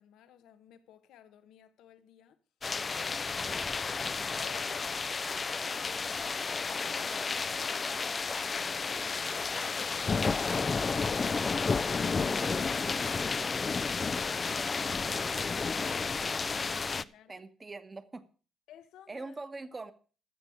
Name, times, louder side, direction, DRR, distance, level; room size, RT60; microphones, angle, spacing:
voice 1, 0.0-2.4 2.9-3.8 4.4-17.4 18.7-19.4, left 11 dB, 85° left, 1.0 m, -55 dB
sound 1, 2.6-17.0, left 4 dB, 35° left, 0.5 m, -32 dB
voice 2, 16.2-18.2 19.1-19.9, right 3 dB, 25° right, 1.4 m, -44 dB
13.5 x 6.9 x 6.3 m
cardioid pair, 90°, 0 cm